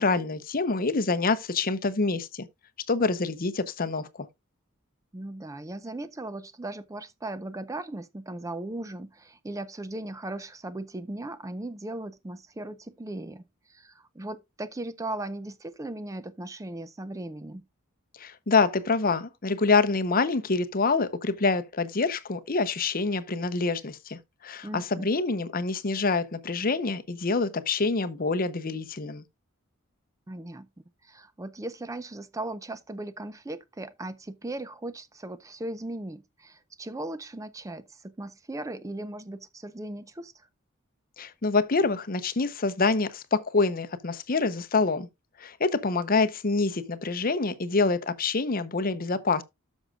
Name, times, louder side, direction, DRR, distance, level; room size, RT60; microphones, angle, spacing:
voice 1, 0.0-2.5 2.9-4.3 18.2-29.2 41.2-45.1 45.4-49.4, left 3 dB, 40° left, 0.8 m, -26 dB
voice 2, 5.1-17.6 24.6-24.9 30.3-30.7 31.0-40.5, right 2 dB, 15° right, 0.4 m, -38 dB
12.5 x 6.3 x 2.4 m
head